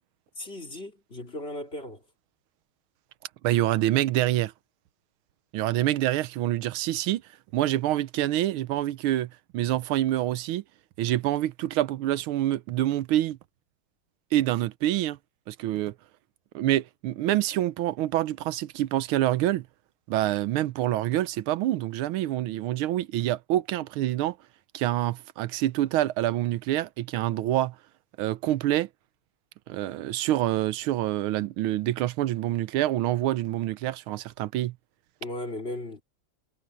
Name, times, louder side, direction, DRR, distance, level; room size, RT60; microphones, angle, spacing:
voice 1, 0.4-2.0 35.2-36.0, left 1 dB, 30° left, 3.7 m, -36 dB
voice 2, 3.4-4.5 5.5-7.2 7.5-10.6 11.0-13.4 14.3-15.2 15.5-15.9 16.5-19.6 20.1-24.4 24.7-27.7 28.2-28.9 29.7-34.7, right 14 dB, 90° right, 1.5 m, -26 dB
omnidirectional pair, 2.3 m